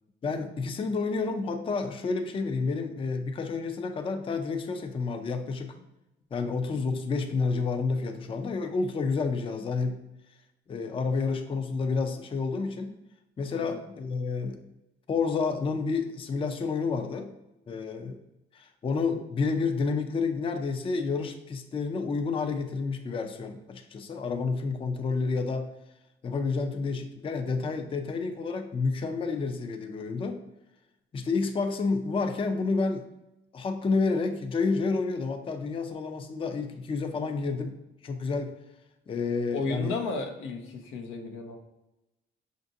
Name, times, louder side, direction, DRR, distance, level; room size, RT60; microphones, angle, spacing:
voice 1, 0.2-5.8 6.3-10.0 10.7-12.9 13.4-14.6 15.1-17.3 17.7-18.2 18.5-25.7 26.2-30.4 31.1-33.0 33.5-37.8 38.0-38.5 39.1-40.0, left 4 dB, 25° left, 6 dB, 0.4 m, -29 dB
voice 2, 39.5-41.6, left 3 dB, 85° left, 3 dB, 0.6 m, -33 dB
5.5 x 2.5 x 2.6 m, 0.95 s
cardioid pair, 90°, 20 cm